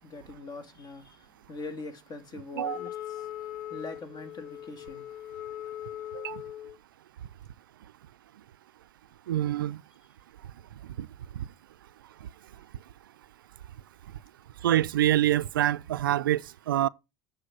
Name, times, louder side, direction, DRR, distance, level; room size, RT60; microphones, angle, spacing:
voice 1, 0.0-5.0, left 3 dB, 40° left, 2.0 m, -43 dB
Wind instrument woodwind instrument, 2.6-6.8, left 12 dB, 60° left, 0.5 m, -40 dB
voice 2, 9.3-9.8 11.0-11.1 11.4-11.5 14.6-16.9, right 13 dB, 85° right, 0.4 m, -26 dB
8.8 x 4.7 x 4.8 m
hypercardioid pair, 80°, 11 cm